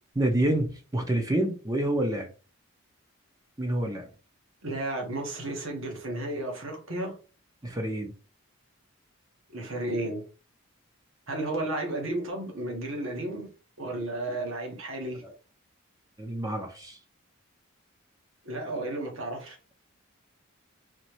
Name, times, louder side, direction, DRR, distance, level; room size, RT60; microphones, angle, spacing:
voice 1, 0.1-2.3 3.6-4.1 7.6-8.1 15.2-15.3 16.2-17.0, right 1 dB, 15° right, 0.6 m, -28 dB
voice 2, 4.6-7.2 9.5-10.2 11.3-13.5 13.8-15.2 18.4-19.6, right 1 dB, 65° right, 1.4 m, -33 dB
4.3 x 3.1 x 3.0 m
head